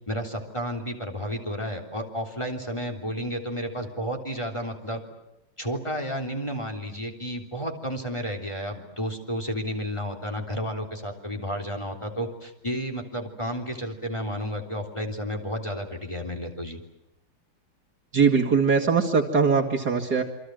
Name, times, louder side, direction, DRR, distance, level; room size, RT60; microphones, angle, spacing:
voice 1, 0.1-5.0 5.6-16.8, equal, 15° left, 4 dB, 3.5 m, -32 dB
voice 2, 18.1-20.2, right 5 dB, 50° right, 2 dB, 2.7 m, -21 dB
28.0 x 25.5 x 7.9 m, 0.89 s
omnidirectional pair, 2.3 m